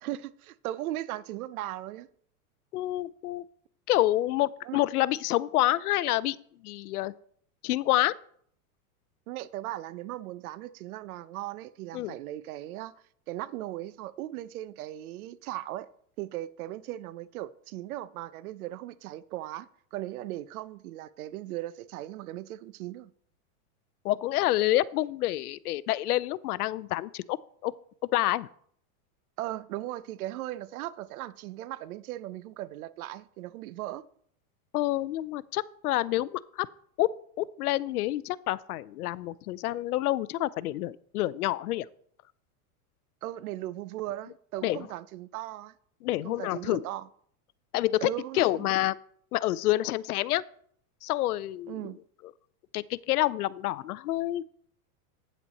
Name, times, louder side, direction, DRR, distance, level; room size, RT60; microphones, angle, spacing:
voice 1, 0.0-2.1 4.6-4.8 9.3-12.9 13.3-15.9 16.2-23.1 29.4-34.0 43.2-45.7 46.2-47.1 48.0-48.7 51.7-52.0, right 14 dB, 75° right, 0.8 m, -38 dB
voice 2, 2.7-3.4 3.9-6.4 6.6-7.1 7.6-8.1 11.9-12.1 24.0-27.4 27.6-27.7 28.1-28.5 34.7-36.7 37.0-37.1 37.4-41.9 44.6-44.8 46.0-46.8 47.7-49.0 49.3-50.4 51.0-51.9 52.7-54.4, left 15 dB, 90° left, 0.6 m, -28 dB
9.1 x 7.4 x 4.1 m
supercardioid pair, 135°, 44 cm